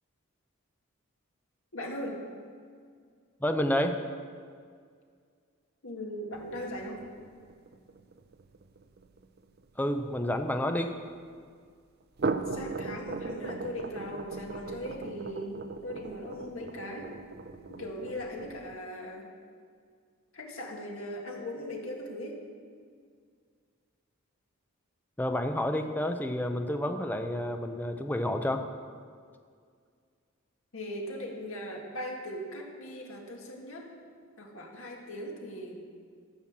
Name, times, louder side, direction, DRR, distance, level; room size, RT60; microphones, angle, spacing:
voice 1, 1.7-2.2 5.8-7.0 12.5-17.2 17.7-19.3 20.3-22.4 30.7-33.9 34.4-35.8, equal, 75° left, 0 dB, 1.9 m, -39 dB
voice 2, 3.4-4.0 9.8-10.9 25.2-28.6, left 1 dB, 10° left, 6 dB, 0.6 m, -29 dB
sound 1, 6.3-10.9 12.0-18.8, right 3 dB, 45° right, 0.5 m, -38 dB
14.0 x 5.8 x 7.3 m, 2.1 s
head